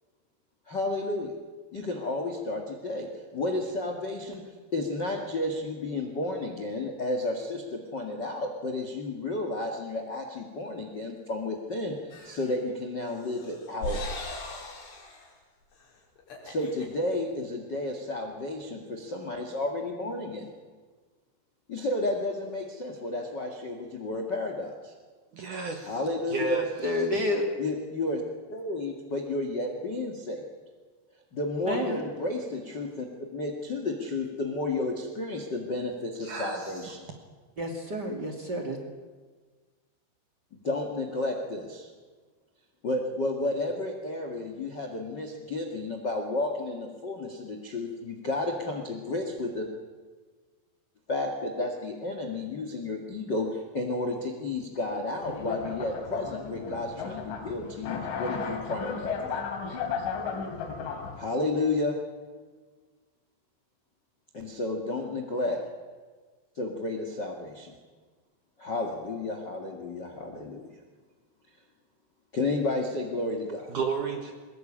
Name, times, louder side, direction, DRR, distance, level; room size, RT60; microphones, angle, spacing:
voice 1, 0.7-1.3 1.7-4.4 4.7-14.2 16.4-20.5 21.7-24.9 25.8-26.6 27.6-28.2 28.5-30.4 31.3-33.1 33.3-37.2 40.6-41.9 42.8-49.7 51.1-59.4 61.1-62.0 64.3-65.6 66.5-67.7 68.6-70.7 72.3-73.7, left 2 dB, 45° left, 3 dB, 1.3 m, -32 dB
sound 1, 12.1-12.6 13.1-15.3 15.7-15.8 16.2-16.9, left 1 dB, 65° left, 6.6 m, -39 dB
voice 2, 25.3-25.9 26.3-27.0 36.2-37.0 73.7-74.3, right 4 dB, 60° right, 3 dB, 2.3 m, -32 dB
voice 3, 26.8-27.5 31.7-32.0 37.6-38.8, left 1 dB, 35° right, 2 dB, 1.9 m, -29 dB
sound 2, 55.2-61.3, left 5 dB, 85° left, 5.0 m, -34 dB
22.5 x 21.0 x 8.8 m, 1.5 s
omnidirectional pair, 5.4 m